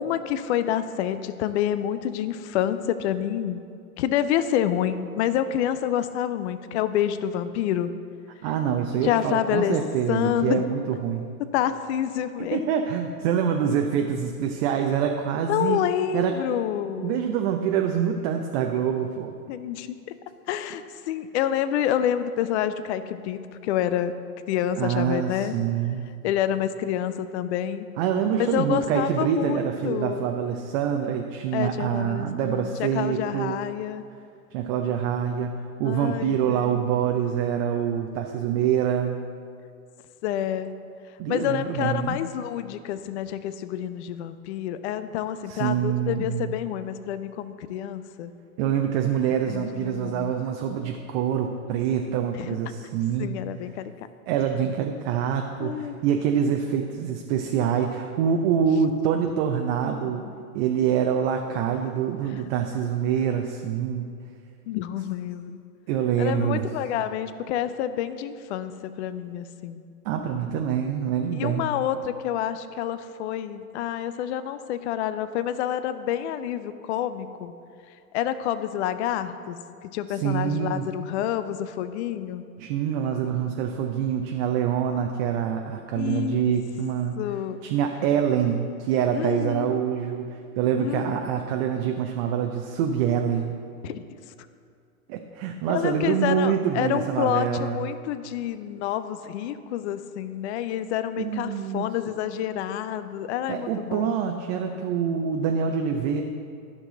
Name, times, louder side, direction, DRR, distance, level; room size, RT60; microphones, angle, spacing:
voice 1, 0.0-3.6 4.0-7.9 9.0-9.8 10.1-10.7 11.4-12.6 15.5-17.2 19.5-20.0 20.5-24.1 24.5-25.6 26.2-27.9 28.4-30.3 31.5-34.0 35.8-36.9 40.2-40.7 41.3-48.3 49.4-50.3 52.4-52.6 53.2-53.9 55.6-56.0 60.2-60.4 62.3-62.4 64.7-65.6 66.2-69.8 71.3-77.5 78.1-79.6 79.8-82.4 85.9-86.5 87.2-87.6 89.1-89.8 90.8-91.2 93.8-94.0 95.7-104.1, left 10 dB, 50° left, 12 dB, 0.5 m, -28 dB
voice 2, 8.4-11.3 12.5-15.8 16.1-16.4 17.0-19.3 24.8-26.1 28.0-33.6 34.5-39.2 41.2-42.2 45.5-46.5 48.6-53.4 54.3-60.2 60.5-64.1 65.9-66.7 70.0-71.6 80.1-80.9 82.6-87.2 87.6-93.6 95.1-97.9 101.2-101.9 103.5-106.2, right 8 dB, 40° right, 4 dB, 0.6 m, -25 dB
11.5 x 6.1 x 3.9 m, 2.3 s
hypercardioid pair, 100°, 45 cm